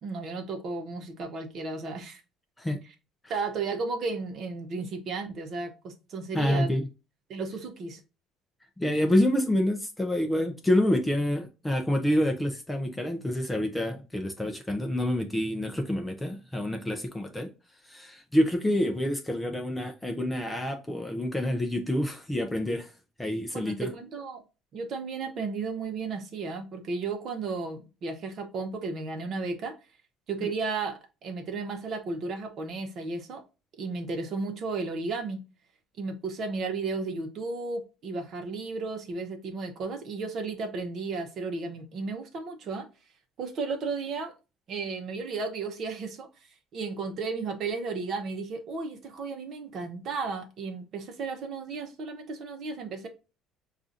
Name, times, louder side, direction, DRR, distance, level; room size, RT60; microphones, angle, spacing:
voice 1, 0.0-2.2 3.3-6.7 7.3-8.0 23.5-24.4 24.7-29.7 30.3-33.4 33.8-35.4 36.0-42.9 43.4-44.3 44.7-46.3 46.7-53.1, right 4 dB, 40° right, 0.8 m, -34 dB
voice 2, 6.3-6.9 8.8-17.5 17.9-22.9 23.2-23.9 30.4-30.5, left 1 dB, 5° left, 0.5 m, -27 dB
5.4 x 2.4 x 2.6 m
cardioid pair, 170°, 0 cm